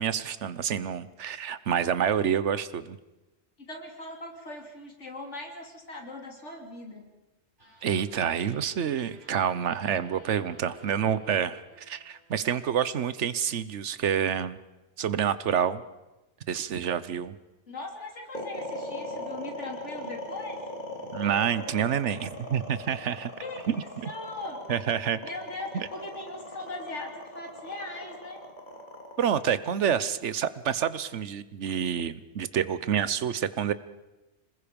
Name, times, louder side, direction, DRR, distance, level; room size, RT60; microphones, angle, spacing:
voice 1, 0.0-3.0 7.8-14.6 15.0-15.8 16.5-17.3 21.1-23.3 23.7-23.8 24.7-25.2 29.2-33.7, right 8 dB, 80° right, 15 dB, 1.2 m, -28 dB
voice 2, 3.6-7.1 17.7-20.6 23.4-24.6 25.2-28.4, left 2 dB, 80° left, 2 dB, 3.3 m, -40 dB
sound 1, 7.6-12.9, left 1 dB, 45° right, 6.1 m, -54 dB
sound 2, 18.3-30.6, left 1 dB, 40° left, 3.1 m, -39 dB
26.5 x 20.5 x 5.3 m, 1.0 s
omnidirectional pair, 1.2 m